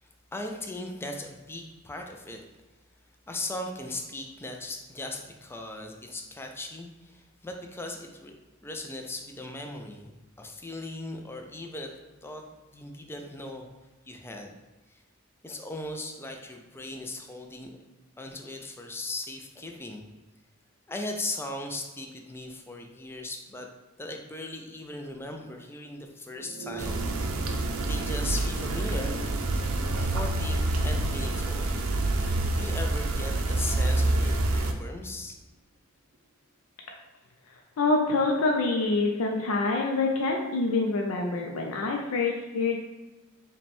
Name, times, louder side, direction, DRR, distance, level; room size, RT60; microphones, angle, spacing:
voice 1, 0.0-2.4 3.3-8.4 8.6-10.1 10.4-12.4 12.7-13.7 14.1-14.5 14.9-15.0 15.4-17.7 18.2-20.0 20.9-23.7 24.0-27.6 27.9-29.2 29.9-31.7 32.1-32.3 32.6-35.3, left 2 dB, 10° left, 3 dB, 0.3 m, -38 dB
sound 1, 26.2-34.9 36.1-36.2, right 3 dB, 35° right, 0.5 m, -43 dB
sound 2, 26.8-34.7, right 2 dB, 85° right, 0.5 m, -27 dB
voice 2, 37.8-42.8, left 3 dB, 90° left, 1 dB, 0.4 m, -26 dB
4.9 x 2.2 x 3.4 m, 1.2 s
head